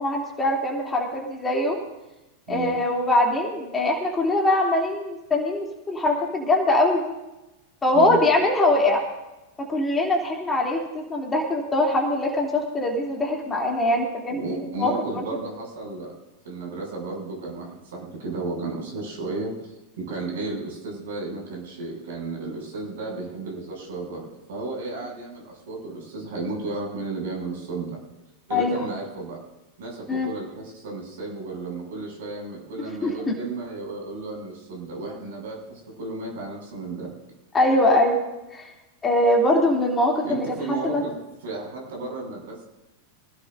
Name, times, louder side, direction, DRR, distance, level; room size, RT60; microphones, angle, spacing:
voice 1, 0.0-1.8 2.5-7.2 7.8-9.0 9.6-15.2 28.5-28.8 30.1-30.3 33.0-33.3 37.5-38.2 38.5-38.7 39.0-41.0, left 1 dB, 15° left, -1 dB, 3.1 m, -22 dB
voice 2, 2.5-2.8 7.9-8.2 14.3-16.1 16.4-27.9 28.5-29.4 29.8-37.1 40.2-41.1 41.4-42.6, right 3 dB, 60° right, -1 dB, 7.0 m, -33 dB
25.5 x 17.0 x 2.7 m, 0.99 s
figure-of-eight pair, 90°, 0 cm